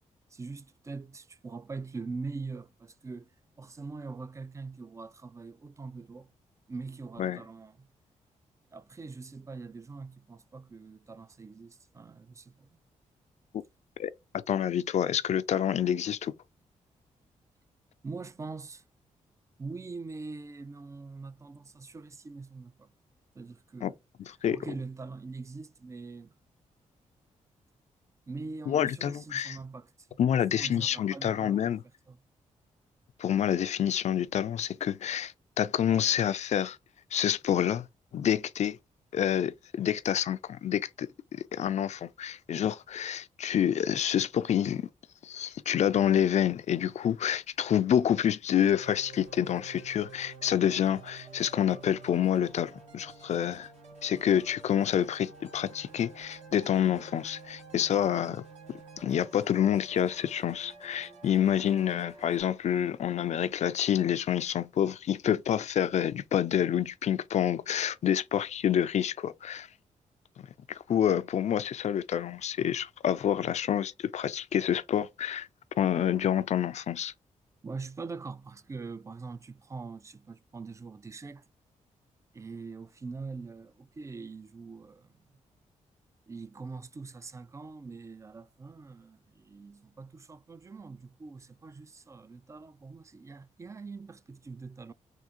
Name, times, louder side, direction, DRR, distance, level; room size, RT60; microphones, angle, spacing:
voice 1, 0.3-3.3 3.6-6.3 6.7-7.9 8.7-12.8 18.0-18.8 19.6-22.9 23.3-24.0 24.5-26.3 28.3-31.6 32.1-32.2 77.6-81.4 82.3-85.2 86.3-94.9, right 4 dB, 25° right, 0.4 m, -43 dB
voice 2, 14.5-16.3 23.8-23.9 24.3-24.6 28.7-29.6 30.2-31.8 33.2-36.8 37.1-37.9 38.1-38.8 39.1-41.1 41.5-44.9 45.2-53.7 54.0-58.4 59.0-69.7 70.4-75.5 75.8-77.1, left 9 dB, 60° left, 0.4 m, -28 dB
sound 1, 48.7-62.4, right 4 dB, 60° right, 2.0 m, -50 dB
3.6 x 2.5 x 2.7 m
cardioid pair, 75°, 13 cm